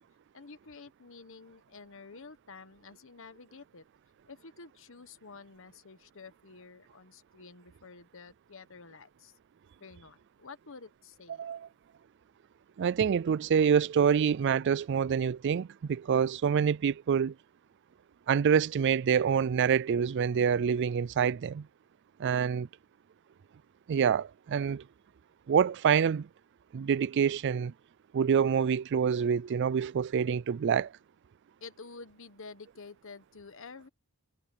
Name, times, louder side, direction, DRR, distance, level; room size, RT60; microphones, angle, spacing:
voice 1, 0.3-3.8 4.3-9.4 9.8-11.5 31.6-33.9, left 4 dB, 65° left, 1.2 m, -50 dB
voice 2, 12.8-17.3 18.3-21.7 22.2-22.7 23.9-24.8 25.5-26.3 26.7-27.7 28.1-30.9, right 7 dB, 55° right, 0.4 m, -26 dB
head